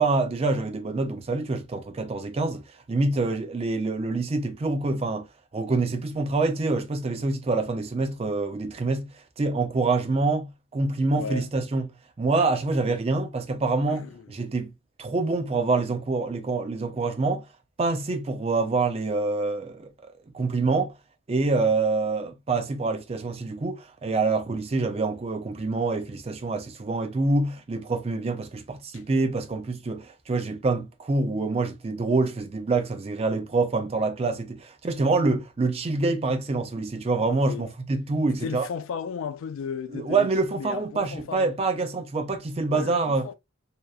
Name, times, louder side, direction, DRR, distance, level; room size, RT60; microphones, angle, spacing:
voice 1, 0.0-2.6 2.9-5.3 5.5-9.1 9.4-11.9 12.2-14.7 15.0-17.4 17.8-19.9 20.3-20.9 21.3-38.7 39.9-43.3, right 3 dB, 30° right, 0.4 m, -26 dB
voice 2, 11.2-11.5 13.9-14.3 28.9-29.0 37.5-37.7 38.4-41.5 42.7-43.3, left 6 dB, 70° left, 0.3 m, -35 dB
2.7 x 2.0 x 2.3 m
head